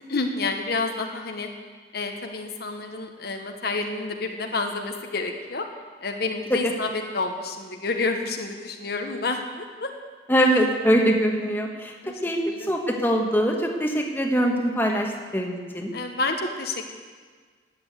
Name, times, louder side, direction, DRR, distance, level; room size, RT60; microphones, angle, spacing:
voice 1, 0.1-1.5 1.9-5.6 6.0-9.9 10.4-10.6 12.0-12.7 15.9-16.8, left 3 dB, 55° left, 4 dB, 1.2 m, -29 dB
voice 2, 10.3-11.9 12.2-12.4 12.7-15.9, equal, 10° left, 1 dB, 1.3 m, -23 dB
12.5 x 8.7 x 9.1 m, 1.5 s
head